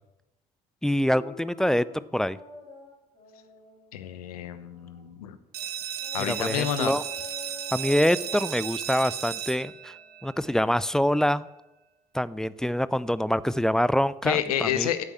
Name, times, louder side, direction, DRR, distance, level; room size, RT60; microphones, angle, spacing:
voice 1, 0.8-2.4 6.2-7.0 7.7-9.7 10.2-11.5 12.1-14.9, equal, 5° left, 18 dB, 0.4 m, -25 dB
sound 1, 1.1-5.2 6.0-10.7, left 5 dB, 35° left, 5.0 m, -47 dB
voice 2, 3.9-5.4 6.1-7.0 14.2-15.0, left 10 dB, 75° left, 11 dB, 0.9 m, -29 dB
sound 2, 5.5-11.0, right 10 dB, 55° right, 1.3 m, -35 dB
10.0 x 8.2 x 8.3 m, 0.95 s
figure-of-eight pair, 55°, 19 cm